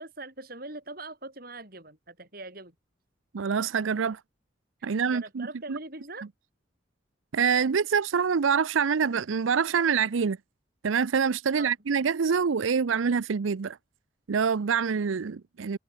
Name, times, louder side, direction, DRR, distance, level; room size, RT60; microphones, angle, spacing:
voice 1, 0.0-2.8 4.8-6.3 11.6-11.7, right 2 dB, 50° right, 7.0 m, -42 dB
voice 2, 3.3-4.2 4.8-5.8 7.3-10.4 10.8-13.8 14.3-15.8, right 6 dB, 90° right, 0.5 m, -26 dB
head